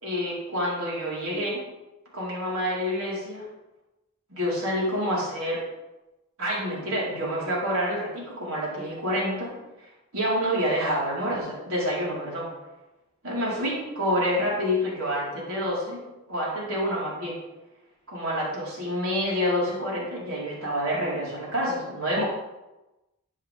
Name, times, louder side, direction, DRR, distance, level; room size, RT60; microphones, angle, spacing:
voice 1, 0.0-1.6 2.1-3.5 4.3-5.6 6.4-9.5 9.8-12.5 13.2-16.0 16.3-17.4 18.1-22.2, equal, 70° right, -6 dB, 4.7 m, -28 dB
13.0 x 10.0 x 3.7 m, 1.0 s
head